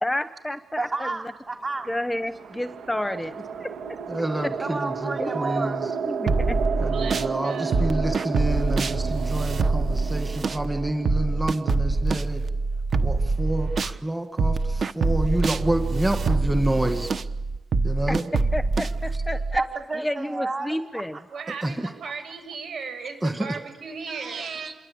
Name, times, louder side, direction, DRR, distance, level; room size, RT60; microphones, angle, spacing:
voice 1, 0.0-1.1 1.9-4.0 5.2-5.3 6.1-6.6 18.1-19.6 20.0-21.2, left 1 dB, 5° left, 11 dB, 1.0 m, -30 dB
voice 2, 0.8-1.9 4.6-5.8 19.5-21.7 23.3-23.4 24.1-24.7, right 3 dB, 25° right, 4 dB, 3.3 m, -32 dB
sound 1, 1.7-12.1, right 6 dB, 85° right, 1.7 m, -32 dB
voice 3, 4.1-5.9 6.8-12.4 13.0-17.1 17.8-18.3 21.6-21.9 23.2-23.5, right 1 dB, 10° right, 5 dB, 1.9 m, -28 dB
sound 2, 6.3-7.3 7.7-14.0 14.4-19.6, right 3 dB, 45° right, 1.1 m, -25 dB
voice 4, 6.9-7.9 21.3-24.7, right 5 dB, 65° right, 7 dB, 7.6 m, -36 dB
28.0 x 23.0 x 8.6 m, 1.1 s
wide cardioid pair, 150°, 0 cm